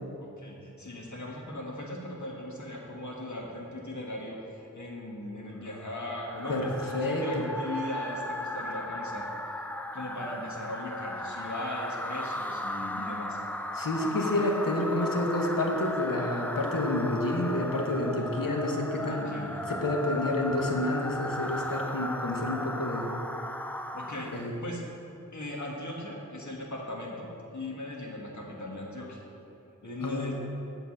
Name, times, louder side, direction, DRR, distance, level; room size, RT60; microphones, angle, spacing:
voice 1, 0.2-9.3 9.9-13.4 18.9-19.7 23.8-24.8 25.3-29.2 29.8-30.3, left 1 dB, 60° left, -2 dB, 1.5 m, -38 dB
sound 1, 5.6-24.6, left 1 dB, 5° left, 0.3 m, -36 dB
voice 2, 6.9-7.4 13.7-23.1 24.3-24.5 30.0-30.3, left 1 dB, 90° left, 1 dB, 1.0 m, -29 dB
9.0 x 3.9 x 7.0 m, 2.9 s
wide cardioid pair, 50°, 32 cm